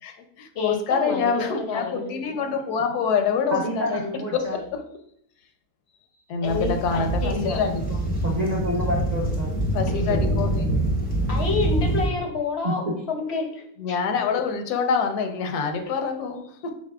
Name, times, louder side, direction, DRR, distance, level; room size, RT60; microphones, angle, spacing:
voice 1, 0.0-4.0 4.3-4.8 6.3-8.0 9.7-10.6 13.8-16.7, left 5 dB, 85° left, 5 dB, 1.1 m, -26 dB
voice 2, 0.6-2.1 6.4-7.6 11.3-14.0, left 4 dB, 60° left, 2 dB, 0.7 m, -28 dB
voice 3, 3.5-4.6 8.2-9.5 10.1-10.4 12.6-13.0, equal, 50° right, -4 dB, 0.5 m, -28 dB
sound 1, 6.4-12.1, right 1 dB, 10° left, 0.4 m, -25 dB
4.7 x 4.0 x 2.3 m, 0.69 s
omnidirectional pair, 1.6 m